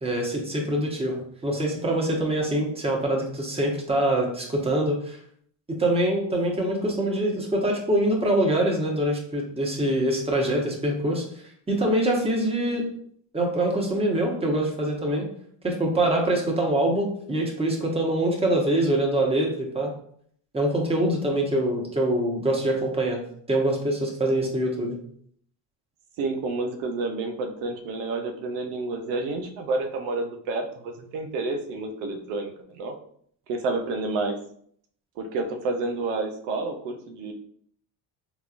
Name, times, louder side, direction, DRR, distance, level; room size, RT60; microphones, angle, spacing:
voice 1, 0.0-5.2 5.8-11.2 11.7-12.9 13.3-15.2 15.6-19.9 20.5-23.2 23.5-25.0, right 1 dB, 15° right, -1 dB, 1.0 m, -24 dB
voice 2, 26.2-32.9 33.5-34.4 35.2-37.3, right 3 dB, 90° right, 4 dB, 0.6 m, -29 dB
3.5 x 3.0 x 2.5 m, 0.63 s
supercardioid pair, 80°, 46 cm